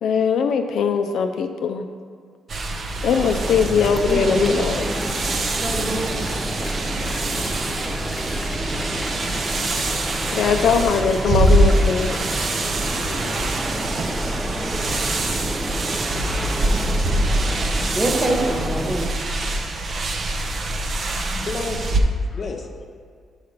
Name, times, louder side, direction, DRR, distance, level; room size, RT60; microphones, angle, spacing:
voice 1, 0.0-1.9 3.0-4.9 10.3-12.3 12.9-14.2, left 6 dB, 70° left, 7 dB, 0.4 m, -21 dB
sound 1, 2.5-22.0, right 2 dB, 50° right, 0.6 m, -24 dB
sound 2, 3.1-19.1, equal, 5° right, 0.4 m, -31 dB
voice 2, 4.1-5.3 5.5-6.1 14.2-14.3 14.6-14.8 17.9-19.1, right 1 dB, 20° right, 0 dB, 1.2 m, -26 dB
Clapping, 5.9-12.5, left 1 dB, 20° left, 1.1 m, -39 dB
voice 3, 20.8-22.8, left 3 dB, 40° left, 3 dB, 0.7 m, -33 dB
5.1 x 4.8 x 5.6 m, 2.1 s
cardioid pair, 90°, 0 cm